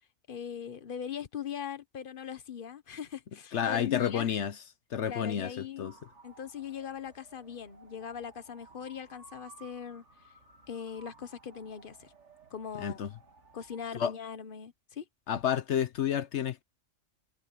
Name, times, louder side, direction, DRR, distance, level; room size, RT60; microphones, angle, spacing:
voice 1, 0.3-4.3 5.1-5.9 6.2-10.0 10.7-12.1 12.5-13.0 13.5-15.1, left 8 dB, 45° left, 1.2 m, -40 dB
voice 2, 3.5-4.5 4.9-5.9 12.8-13.1 13.9-14.1 15.3-16.6, left 9 dB, 65° left, 1.0 m, -30 dB
sound 1, 5.8-13.9, right 4 dB, 60° right, 2.9 m, -57 dB
omnidirectional pair, 1.3 m